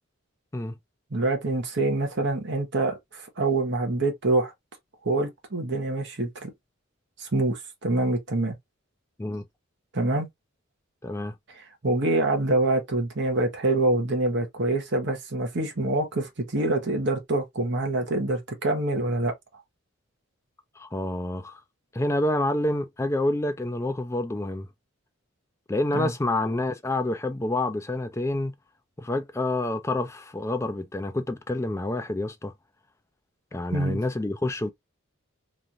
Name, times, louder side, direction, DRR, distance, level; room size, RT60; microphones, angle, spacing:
voice 1, 1.1-4.5 5.0-6.5 7.2-8.5 9.9-10.3 11.5-19.3 25.9-26.1 33.7-34.0, right 2 dB, 55° right, 0.9 m, -26 dB
voice 2, 11.0-11.3 20.8-21.6 21.9-24.7 25.7-28.5 29.0-32.5 33.5-34.7, left 1 dB, 15° left, 0.3 m, -28 dB
3.1 x 2.5 x 2.5 m
head